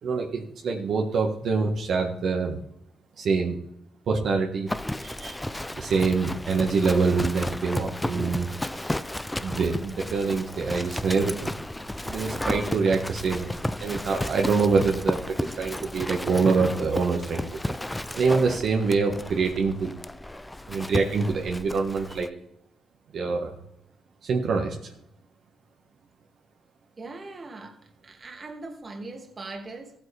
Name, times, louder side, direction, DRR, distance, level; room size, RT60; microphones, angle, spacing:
voice 1, 0.0-2.6 3.2-3.6 4.1-4.7 5.0-5.4 5.7-8.9 9.4-11.5 12.0-13.5 13.8-17.5 18.1-19.9 20.7-22.3 23.1-23.5 24.2-24.9, right 4 dB, 60° right, 1.6 m, -25 dB
Livestock farm animals working animals, 4.7-22.3, left 1 dB, 10° left, 0.5 m, -33 dB
voice 2, 27.0-29.9, right 3 dB, 35° right, 2.2 m, -40 dB
15.0 x 8.8 x 3.5 m
cardioid pair, 90°, 0 cm